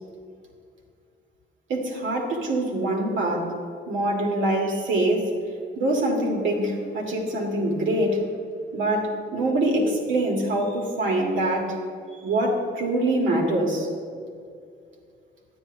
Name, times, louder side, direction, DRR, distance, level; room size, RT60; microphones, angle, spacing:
voice 1, 1.7-3.5 3.9-5.3 5.8-8.2 8.7-11.8 12.2-13.9, right 1 dB, 70° right, -1 dB, 2.0 m, -24 dB
11.5 x 9.5 x 2.7 m, 2.3 s
cardioid pair, 90°, 20 cm